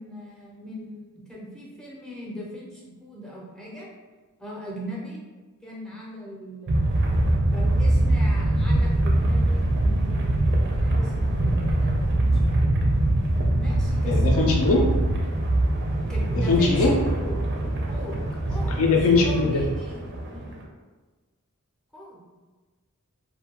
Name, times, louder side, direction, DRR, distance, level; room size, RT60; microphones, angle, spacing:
voice 1, 0.0-3.9 4.4-5.2 5.6-7.0 7.5-12.7 13.6-14.2 16.1-17.4 17.9-18.8 19.1-20.5 21.9-22.2, equal, 5° left, -5 dB, 0.5 m, -39 dB
sound 1, 6.7-20.6, right 1 dB, 50° right, 0.4 m, -23 dB
voice 2, 14.0-14.8 16.5-16.9 18.8-19.6, left 3 dB, 65° left, 0 dB, 0.4 m, -20 dB
2.5 x 2.2 x 2.8 m, 1.3 s
head